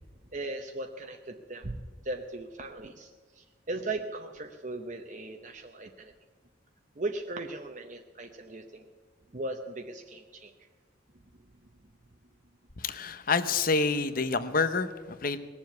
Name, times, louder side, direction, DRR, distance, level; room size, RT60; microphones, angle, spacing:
voice 1, 0.3-1.8 2.0-6.1 7.0-8.9 9.3-10.5, right 2 dB, 40° right, 4 dB, 0.8 m, -38 dB
voice 2, 12.8-15.4, left 4 dB, 45° left, 12 dB, 0.8 m, -28 dB
19.5 x 7.3 x 9.4 m, 1.4 s
head